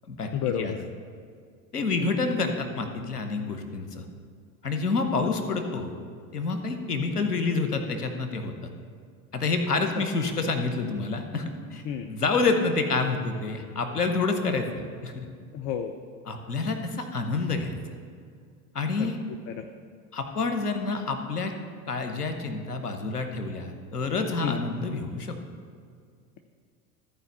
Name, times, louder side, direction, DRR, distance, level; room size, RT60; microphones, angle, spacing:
voice 1, 0.3-0.8 9.9-10.1 11.8-12.1 15.5-15.9 19.0-19.1 19.5-19.7 24.4-24.6, left 9 dB, 40° left, 6 dB, 0.7 m, -30 dB
voice 2, 1.7-4.0 4.6-5.9 6.3-8.7 9.3-11.8 12.1-15.3 16.3-17.8 18.7-19.2 20.1-21.5 21.9-25.4, left 3 dB, 90° left, 6 dB, 1.0 m, -28 dB
14.0 x 4.8 x 6.7 m, 2.1 s
figure-of-eight pair, 80°, 45 cm